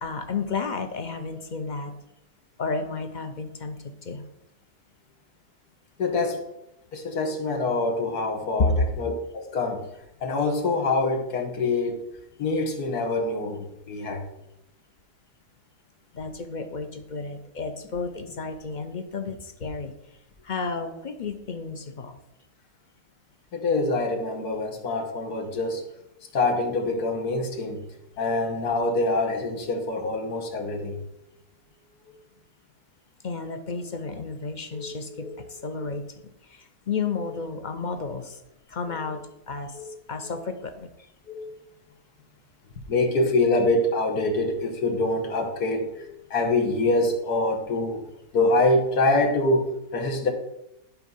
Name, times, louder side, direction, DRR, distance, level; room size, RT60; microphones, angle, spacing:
voice 1, 0.0-1.9 2.6-4.3 16.1-19.9 20.4-22.2 33.2-36.0 36.5-38.4 38.7-39.8 40.1-40.9, left 4 dB, 50° left, 8 dB, 0.5 m, -32 dB
voice 2, 6.0-6.4 6.9-9.9 10.2-12.0 12.4-14.2 23.5-25.9 26.3-31.0 34.7-35.4 35.8-35.9 38.9-39.0 39.7-39.9 40.2-40.3 41.3-41.5 42.9-48.0 48.3-50.3, left 2 dB, 90° left, 3 dB, 1.9 m, -25 dB
11.0 x 4.5 x 5.5 m, 0.85 s
omnidirectional pair, 1.6 m